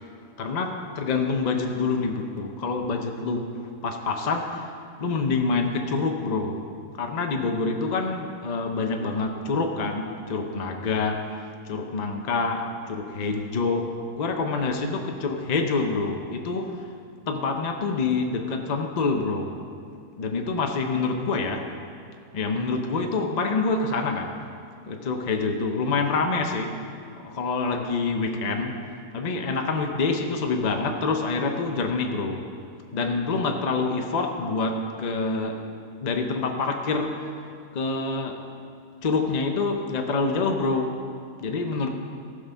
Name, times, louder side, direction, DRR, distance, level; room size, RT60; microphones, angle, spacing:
voice 1, 0.4-4.7 5.0-6.6 7.0-16.9 17.3-19.6 20.2-21.7 22.3-24.4 24.8-26.8 27.2-28.8 29.1-32.5 32.9-35.6 36.0-37.3 37.7-38.4 39.0-41.0 41.4-41.9, left 3 dB, 50° left, 3 dB, 0.5 m, -26 dB
15.0 x 6.6 x 5.5 m, 2.4 s
omnidirectional pair, 1.7 m